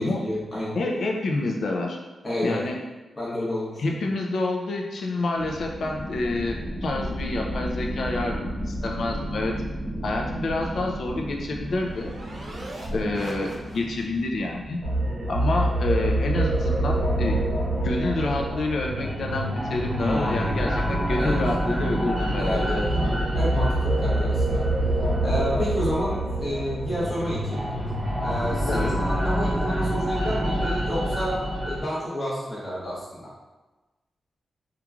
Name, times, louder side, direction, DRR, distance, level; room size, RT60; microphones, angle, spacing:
voice 1, 0.0-0.8 2.2-2.6 3.2-4.0 9.8-10.1 20.0-20.7 21.2-21.4 22.4-24.7 25.2-27.7 28.2-33.3, equal, 30° left, -8 dB, 1.1 m, -30 dB
voice 2, 0.7-2.0 2.4-2.8 3.8-9.6 10.0-12.1 12.9-14.8 15.3-17.4 17.8-22.8 28.7-29.0, left 2 dB, 65° left, 0 dB, 0.3 m, -28 dB
sound 1, 5.4-17.6, equal, 85° right, 0.7 m, -35 dB
sound 2, 11.0-14.2, right 1 dB, 45° right, 0.5 m, -40 dB
sound 3, 14.8-31.8, right 1 dB, 20° right, 1.0 m, -25 dB
3.0 x 2.4 x 2.3 m, 1.1 s
wide cardioid pair, 145°, 0 cm